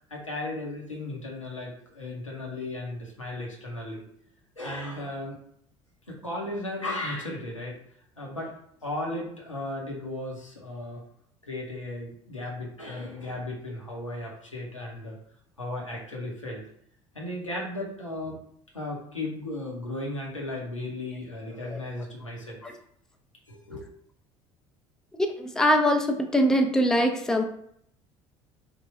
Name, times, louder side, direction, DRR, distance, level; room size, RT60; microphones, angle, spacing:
voice 1, 0.1-4.1 4.6-5.4 6.1-7.8 8.2-8.5 8.8-11.0 11.4-15.2 15.6-16.6 17.1-18.4 18.7-22.6 23.5-23.9, left 1 dB, 90° left, -3 dB, 0.7 m, -35 dB
voice 2, 25.2-27.4, equal, 5° left, 4 dB, 0.4 m, -23 dB
3.2 x 2.2 x 3.2 m, 0.68 s
figure-of-eight pair, 60°, 16 cm